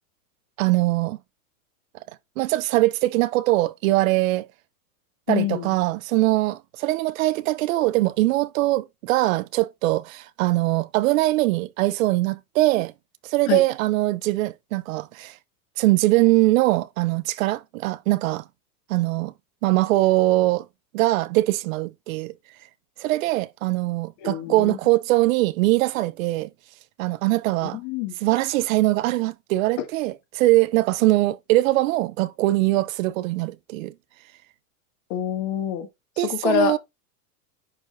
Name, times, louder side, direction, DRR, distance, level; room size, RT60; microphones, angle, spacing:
voice 1, 0.6-1.2 2.4-4.5 5.3-12.9 13.2-15.3 15.8-18.4 18.9-19.3 19.6-20.7 20.9-22.3 23.0-26.5 27.0-27.8 28.2-33.9 36.2-36.8, right 18 dB, 65° right, 0.7 m, -22 dB
voice 2, 5.3-5.7 13.5-13.6 24.2-24.8 27.6-28.1 35.1-35.9 36.2-36.7, left 12 dB, 45° left, 2.1 m, -26 dB
10.5 x 5.0 x 2.6 m
supercardioid pair, 155°, 43 cm